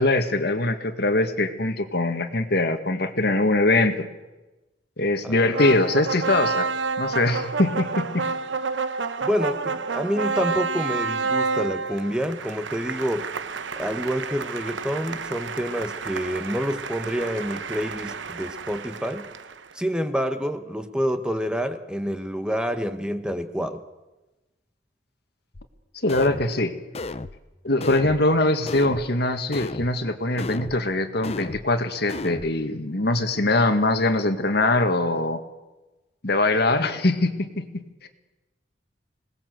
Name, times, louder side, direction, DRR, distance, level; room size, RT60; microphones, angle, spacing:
voice 1, 0.0-4.1 5.0-6.7 7.0-8.3 26.0-26.8 27.6-35.4 36.2-38.1, left 2 dB, 60° left, 8 dB, 1.8 m, -22 dB
voice 2, 5.2-5.6 9.2-13.3 13.8-19.3 19.7-23.8, equal, 5° right, 8 dB, 1.1 m, -28 dB
sound 1, 5.5-19.7, right 4 dB, 85° right, 1.0 m, -29 dB
sound 2, 25.5-25.7 26.1-26.5 26.9-27.4 27.8-28.2 28.7-29.1 29.5-29.9 30.4-30.8 31.2-31.7 32.1-32.5, left 2 dB, 35° left, 0.7 m, -33 dB
26.0 x 19.0 x 7.8 m, 1.1 s
head